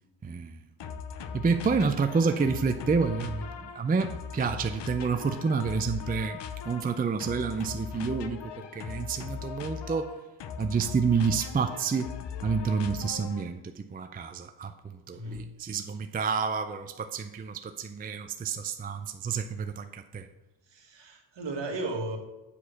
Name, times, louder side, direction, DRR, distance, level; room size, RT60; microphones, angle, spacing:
voice 1, 0.2-0.6 1.3-3.5 3.7-6.4 6.6-10.1 10.6-12.1 12.4-20.3, right 5 dB, 20° right, 7 dB, 0.4 m, -29 dB
sound 1, 0.8-13.6, left 7 dB, 60° left, 0.8 m, -39 dB
voice 2, 15.1-15.5 20.7-22.2, right 2 dB, 60° right, 2 dB, 1.8 m, -35 dB
8.3 x 4.8 x 5.8 m, 1.1 s
cardioid pair, 105°, 48 cm